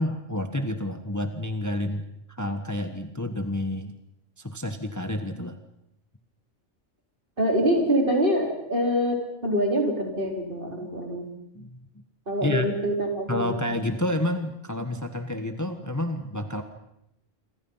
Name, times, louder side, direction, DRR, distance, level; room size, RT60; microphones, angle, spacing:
voice 1, 0.0-4.0 4.4-5.6 10.8-10.9 11.5-11.8 12.4-12.7 13.3-16.6, left 1 dB, 15° left, 7 dB, 1.4 m, -29 dB
voice 2, 7.4-11.3 12.3-13.6, equal, 45° right, 1 dB, 5.0 m, -25 dB
27.5 x 25.0 x 5.8 m, 0.80 s
omnidirectional pair, 1.3 m